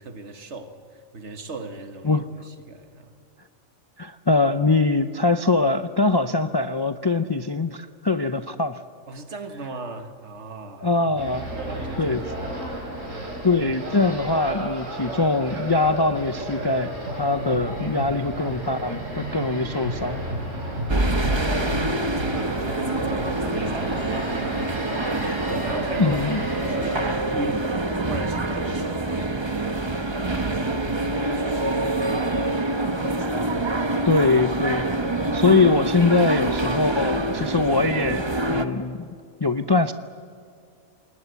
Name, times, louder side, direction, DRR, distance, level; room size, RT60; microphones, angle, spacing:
voice 1, 0.0-3.1 9.1-13.5 22.3-24.2 25.5-26.3 26.6-27.8 28.1-33.2, right 2 dB, 65° right, 1.7 m, -39 dB
voice 2, 4.0-8.8 10.8-11.5 12.0-12.2 13.4-20.2 26.0-26.4 34.1-34.9 35.3-39.1 39.4-39.9, left 3 dB, 30° left, 0.4 m, -22 dB
sound 1, 11.2-27.2, right 1 dB, 80° right, 5.1 m, -32 dB
sound 2, 20.9-38.7, right 2 dB, 25° right, 1.0 m, -26 dB
27.5 x 20.0 x 8.1 m
omnidirectional pair, 1.3 m